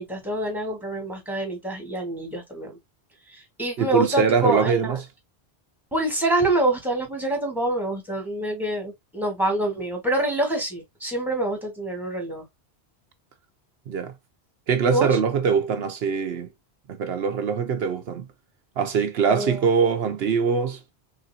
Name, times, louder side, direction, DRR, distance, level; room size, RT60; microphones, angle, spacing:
voice 1, 0.0-2.8 3.3-5.0 5.9-12.4 14.9-15.1 19.3-19.7, right 1 dB, ahead, 1.6 m, -26 dB
voice 2, 3.8-5.0 13.9-14.1 14.7-16.5 16.9-18.2 18.8-20.8, right 6 dB, 75° right, 0.9 m, -23 dB
3.9 x 3.6 x 2.7 m
omnidirectional pair, 1.1 m